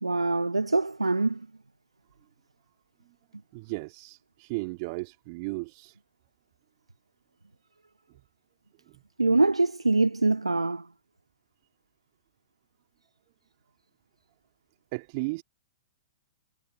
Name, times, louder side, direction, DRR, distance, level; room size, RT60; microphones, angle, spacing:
voice 1, 0.0-1.4 9.2-10.9, right 2 dB, 85° right, 0.8 m, -24 dB
voice 2, 3.5-6.0 14.9-15.4, right 28 dB, 40° right, 2.6 m, -35 dB
figure-of-eight pair, 110°, 3 cm